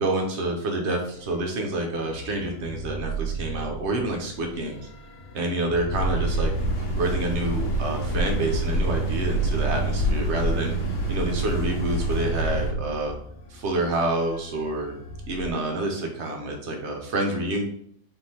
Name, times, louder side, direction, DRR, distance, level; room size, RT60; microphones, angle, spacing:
voice 1, 0.0-4.8 5.3-6.5 6.9-10.8 11.1-13.1 13.5-15.0 15.3-17.6, right 2 dB, 70° right, 2 dB, 0.6 m, -28 dB
sound 1, 1.1-15.5, right 4 dB, 65° left, 1.1 m, -37 dB
sound 2, 5.9-12.7, right 1 dB, 85° left, 1.4 m, -26 dB
sound 3, 6.5-12.2, right 2 dB, 25° right, 0.9 m, -38 dB
3.7 x 2.9 x 4.2 m, 0.68 s
omnidirectional pair, 2.0 m